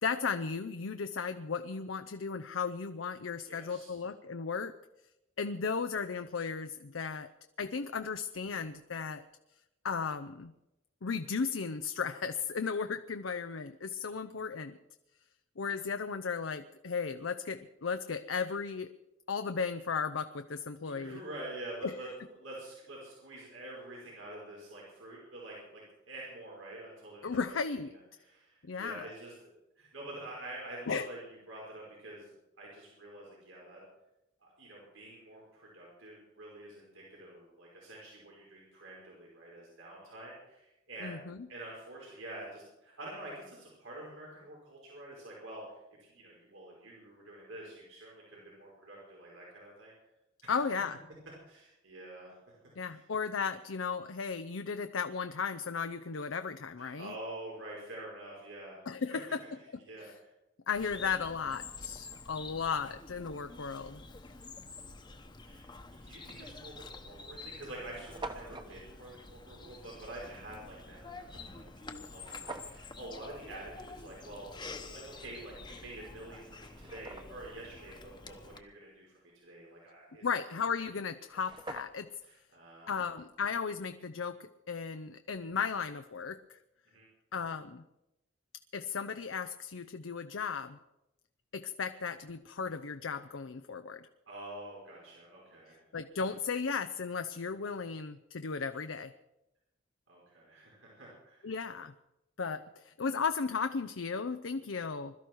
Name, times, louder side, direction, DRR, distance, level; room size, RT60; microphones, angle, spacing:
voice 1, 0.0-4.7 5.4-7.3 7.6-9.2 9.8-10.5 11.0-14.8 15.6-18.9 19.3-21.2 21.8-21.9 27.2-27.9 28.6-29.1 30.9-31.1 41.0-41.4 50.5-51.0 52.8-57.1 58.9-59.4 60.7-64.0 80.1-82.1 82.9-84.4 84.7-86.6 87.3-87.8 88.7-90.8 91.5-94.0 95.9-99.1 101.4-101.9 102.4-105.1, left 5 dB, 75° left, 8 dB, 0.7 m, -35 dB
voice 2, 3.4-3.9 20.8-22.1 22.4-27.6 27.9-29.3 29.8-33.8 34.4-41.2 41.5-49.9 50.4-50.6 51.5-52.5 52.9-53.0 56.8-58.9 59.1-59.2 59.9-60.3 65.5-74.6 74.9-80.3 82.2-83.2 86.9-87.1 94.3-95.8 100.1-101.5, right 1 dB, 90° right, -4 dB, 5.3 m, -47 dB
Bird vocalization bird call bird song, 60.7-78.6, left 3 dB, 25° left, 1.1 m, -48 dB
sound 1, 66.4-66.6 67.3-67.4 67.5-67.6 67.8-68.7 72.2-72.8 75.7-75.8 76.4-77.5 80.9-81.0 81.2-82.2, right 2 dB, 25° right, 1.1 m, -45 dB
21.5 x 13.0 x 4.7 m, 0.92 s
head